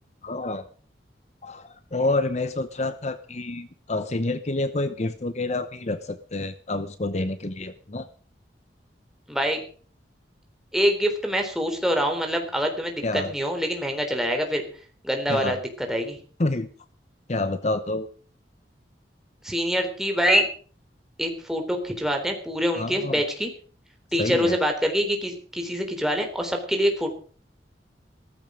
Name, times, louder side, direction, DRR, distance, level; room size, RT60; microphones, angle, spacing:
voice 1, 0.2-0.6 1.4-8.1 13.0-13.3 15.3-15.6 16.4-16.7 17.3-18.1 22.8-23.2 24.2-24.6, left 2 dB, 40° left, 11 dB, 0.9 m, -28 dB
voice 2, 9.3-9.6 10.7-14.6 15.0-16.2 19.4-20.5 21.2-23.5 24.1-27.1, equal, 5° right, 3 dB, 3.7 m, -25 dB
16.0 x 14.5 x 5.1 m, 0.43 s
head